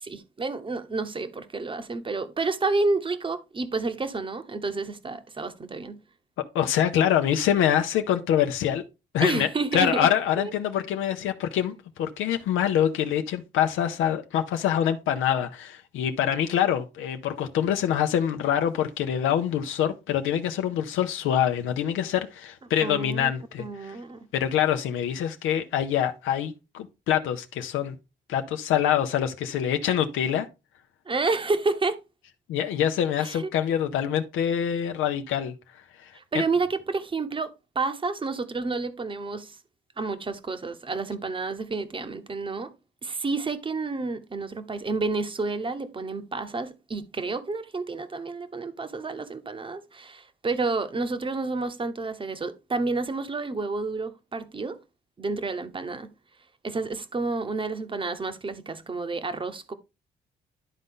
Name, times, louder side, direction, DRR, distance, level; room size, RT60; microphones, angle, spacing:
voice 1, 0.0-6.0 9.2-10.1 10.4-10.5 22.8-23.3 23.6-24.3 31.1-32.0 33.2-33.5 36.1-39.6 40.0-42.7 43.0-54.8 55.2-56.1 56.6-59.7, right 3 dB, 25° right, 0.9 m, -30 dB
voice 2, 6.5-8.8 9.1-24.0 24.3-28.0 28.3-30.5 32.5-35.5 36.0-36.4, left 10 dB, 85° left, 0.7 m, -25 dB
11.0 x 3.9 x 3.7 m
cardioid pair, 90°, 20 cm